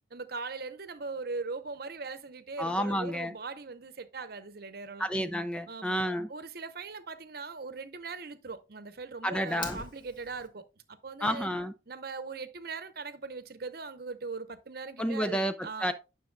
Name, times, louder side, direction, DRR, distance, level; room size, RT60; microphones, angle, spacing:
voice 1, 0.1-5.1 5.7-6.0 6.3-11.5 11.9-15.9, right 4 dB, 60° right, 0.9 m, -40 dB
voice 2, 2.6-3.3 5.0-6.3 9.2-9.8 11.2-11.7 15.0-15.5 15.8-15.9, equal, 5° left, 0.4 m, -30 dB
Fire, 9.5-10.5, left 2 dB, 30° left, 1.6 m, -42 dB
9.7 x 6.1 x 2.3 m
head